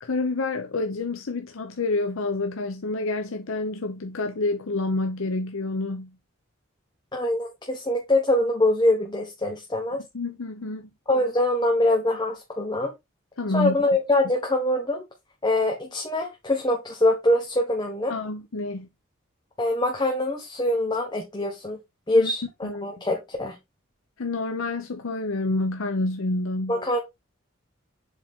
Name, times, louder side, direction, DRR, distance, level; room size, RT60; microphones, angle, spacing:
voice 1, 0.0-6.1 10.1-10.9 13.4-13.8 18.1-18.9 22.1-22.3 22.6-22.9 24.2-26.8, left 2 dB, 85° left, 0.7 m, -28 dB
voice 2, 7.1-10.0 11.1-12.9 13.5-15.0 15.4-18.1 19.6-21.8 22.1-23.6 26.7-27.0, left 1 dB, 20° left, 1.1 m, -24 dB
7.5 x 3.8 x 3.5 m
head